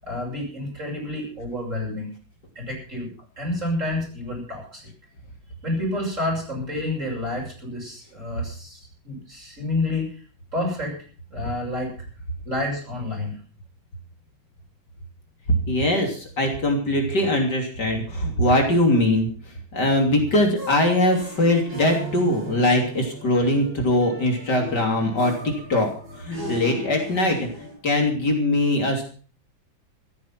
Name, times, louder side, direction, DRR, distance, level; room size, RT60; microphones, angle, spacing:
voice 1, 0.0-2.1 2.5-3.1 3.4-4.8 5.6-10.2 10.5-11.0 11.3-11.9 12.4-13.4, left 2 dB, 35° right, -1 dB, 8.3 m, -29 dB
voice 2, 15.7-19.3 19.7-25.9 26.2-27.5 27.8-29.0, left 1 dB, 55° left, 2 dB, 3.7 m, -21 dB
sound 1, 19.8-27.8, equal, 70° right, 9.0 m, -37 dB
14.5 x 13.5 x 5.9 m, 0.40 s
omnidirectional pair, 2.2 m